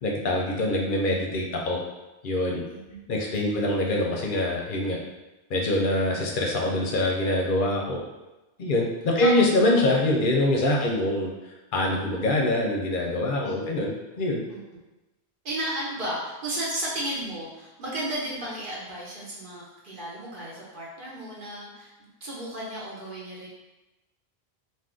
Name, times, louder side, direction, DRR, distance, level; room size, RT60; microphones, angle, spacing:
voice 1, 0.0-1.8 2.2-2.6 3.1-5.0 5.5-8.0 8.6-11.3 11.7-14.4, left 1 dB, 60° left, -1 dB, 0.6 m, -24 dB
voice 2, 2.7-3.1 3.5-4.0 9.2-9.3 10.8-11.0 13.4-13.9 14.5-14.6 15.4-23.5, right 1 dB, 55° right, -5 dB, 1.0 m, -34 dB
2.5 x 2.5 x 3.6 m, 1.1 s
omnidirectional pair, 1.1 m